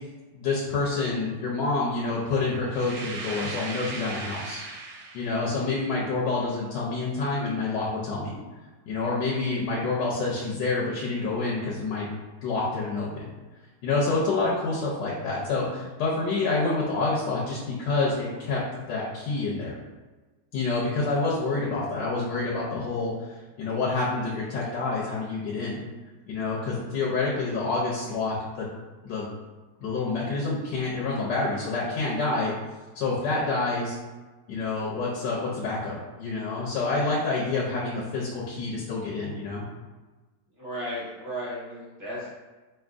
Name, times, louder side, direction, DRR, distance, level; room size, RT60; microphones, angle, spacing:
voice 1, 0.3-4.7 5.1-8.4 8.9-12.1 12.4-13.3 13.8-19.8 20.5-25.8 26.3-28.7 29.0-29.3 29.8-32.5 32.9-33.9 34.5-39.6, left 3 dB, 85° left, -5 dB, 1.3 m, -28 dB
sound 1, 2.7-5.5, right 3 dB, 75° right, 1.1 m, -37 dB
voice 2, 40.6-42.3, equal, 35° right, -6 dB, 1.1 m, -35 dB
4.0 x 3.5 x 2.5 m, 1.2 s
omnidirectional pair, 1.8 m